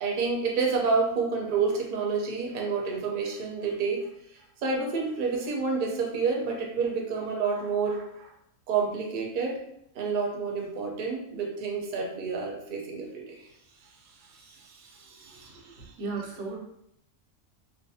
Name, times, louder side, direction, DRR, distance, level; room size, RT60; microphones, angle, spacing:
voice 1, 0.0-4.0 4.3-8.3 8.7-9.5 9.9-13.5 14.2-15.7, right 4 dB, 55° right, 0 dB, 0.5 m, -29 dB
voice 2, 15.3-16.6, right 4 dB, 90° right, 0 dB, 1.0 m, -37 dB
2.5 x 2.3 x 2.6 m, 0.77 s
omnidirectional pair, 1.4 m